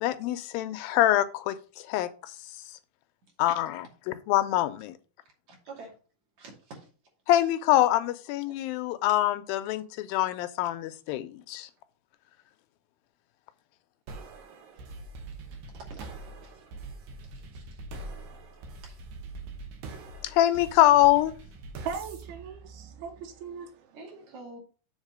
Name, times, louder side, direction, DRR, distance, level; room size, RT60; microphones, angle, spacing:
voice 1, 0.0-2.3 3.4-4.9 7.3-11.7 20.2-21.3, left 14 dB, 80° left, 2.3 m, -25 dB
voice 2, 5.5-5.9 6.4-6.9 8.5-8.6 15.7-16.1 16.4-16.7 17.3-17.8 18.8-19.0 23.9-24.6, right 3 dB, 50° right, 3.7 m, -47 dB
sound 1, 14.1-23.5, right 3 dB, 70° right, 2.7 m, -43 dB
voice 3, 21.9-24.0, right 6 dB, 90° right, 2.9 m, -39 dB
7.3 x 4.0 x 6.3 m
omnidirectional pair, 4.3 m